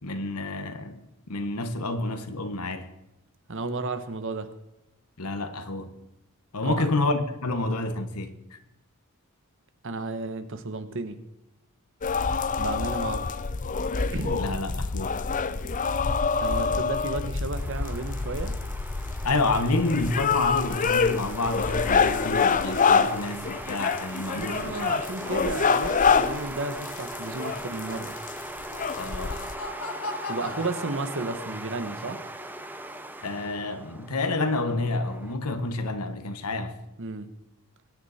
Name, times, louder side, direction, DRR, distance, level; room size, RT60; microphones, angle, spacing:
voice 1, 0.0-2.9 5.2-6.0 6.5-8.6 14.4-15.2 19.2-24.9 25.2-25.5 29.0-29.4 33.2-36.7, left 2 dB, 90° left, 1.4 m, -29 dB
voice 2, 3.5-4.5 6.6-6.9 9.8-11.2 12.6-13.3 14.1-14.5 16.4-18.6 24.3-28.1 30.3-32.2 37.0-37.3, right 3 dB, 60° right, 1.2 m, -33 dB
sound 1, 12.0-29.5, left 5 dB, 35° left, 0.6 m, -26 dB
sound 2, 17.6-35.3, right 1 dB, 10° right, 0.8 m, -39 dB
Laughter, 28.6-31.7, left 2 dB, 75° left, 1.6 m, -38 dB
22.5 x 9.8 x 4.3 m
head